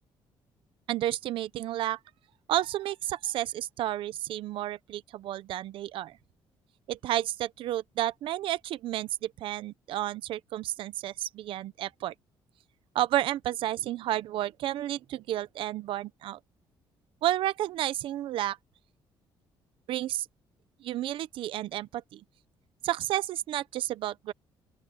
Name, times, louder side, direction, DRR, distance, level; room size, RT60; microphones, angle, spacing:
voice 1, 0.9-2.0 2.5-6.2 6.9-12.1 12.9-16.4 17.2-18.6 19.9-20.3 20.8-22.2 22.8-24.3, right 13 dB, 70° right, 0.8 m, -31 dB
open air
cardioid pair, 135°, 9 cm